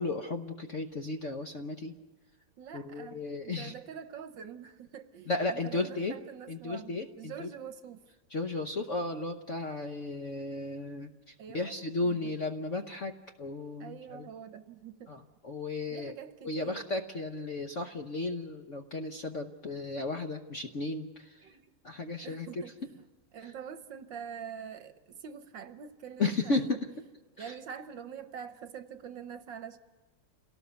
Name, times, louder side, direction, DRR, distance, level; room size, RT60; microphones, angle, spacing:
voice 1, 0.0-1.9 2.7-3.7 5.3-6.1 6.5-7.5 8.3-14.3 15.1-16.1 16.4-21.5 21.8-22.5 23.4-23.5 26.2-26.9 27.4-27.6, left 2 dB, 50° left, 5 dB, 0.9 m, -34 dB
voice 2, 2.6-8.0 11.4-12.2 13.8-15.1 15.9-16.8 21.4-21.7 22.2-23.0 23.3-26.8 27.4-29.8, right 7 dB, 65° right, 10 dB, 1.5 m, -45 dB
28.5 x 18.0 x 6.9 m, 1.3 s
omnidirectional pair, 2.4 m